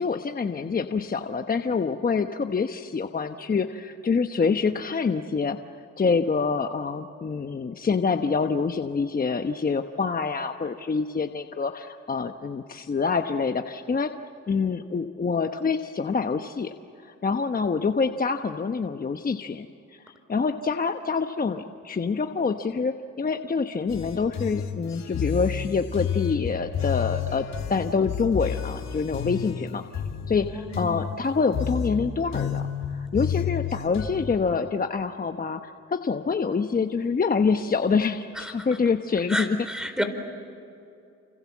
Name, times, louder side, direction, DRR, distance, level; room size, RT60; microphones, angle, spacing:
voice 1, 0.0-5.6 6.0-14.1 14.5-16.7 17.2-19.7 20.1-27.4 27.7-29.8 30.3-39.6, left 5 dB, 30° left, 6 dB, 1.1 m, -26 dB
sound 1, 23.9-34.4, left 8 dB, 65° left, 2.8 m, -31 dB
voice 2, 30.4-30.9 38.3-38.5 39.3-40.0, equal, ahead, 8 dB, 4.4 m, -30 dB
29.5 x 27.0 x 7.4 m, 2.6 s
cardioid pair, 90°, 30 cm